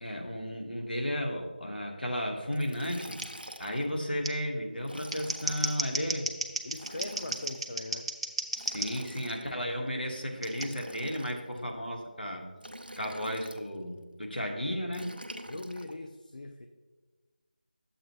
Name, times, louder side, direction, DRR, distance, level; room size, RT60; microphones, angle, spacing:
voice 1, 0.0-3.2 3.6-6.3 8.6-12.5 13.0-15.2, equal, 80° left, 1 dB, 1.6 m, -34 dB
Liquid, 2.5-4.0 4.8-5.9 6.7-7.6 8.5-9.6 10.4-11.6 12.6-13.7 14.9-15.9, equal, 90° right, 0.7 m, -46 dB
Scissors, 3.2-3.3 4.2-4.3 5.0-8.9 10.4-10.7, right 3 dB, 35° right, 0.5 m, -34 dB
voice 2, 6.6-8.1 11.6-11.7 13.0-13.2 15.5-16.7, left 2 dB, 55° left, 6 dB, 0.6 m, -41 dB
10.0 x 7.7 x 3.1 m, 1.3 s
figure-of-eight pair, 165°, 5 cm